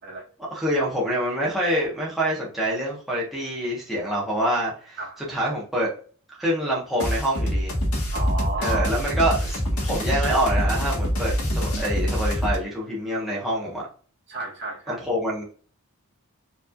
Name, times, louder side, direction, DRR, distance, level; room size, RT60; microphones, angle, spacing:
voice 1, 0.5-5.0 5.3-5.9 6.4-7.7 8.6-13.9 14.9-15.4, right 1 dB, ahead, -6 dB, 1.3 m, -26 dB
voice 2, 5.0-5.3 8.1-9.0 14.3-15.0, right 3 dB, 55° right, -3 dB, 1.8 m, -32 dB
sound 1, 7.0-12.6, equal, 85° left, 1.8 m, -25 dB
4.8 x 3.5 x 2.5 m, 0.42 s
head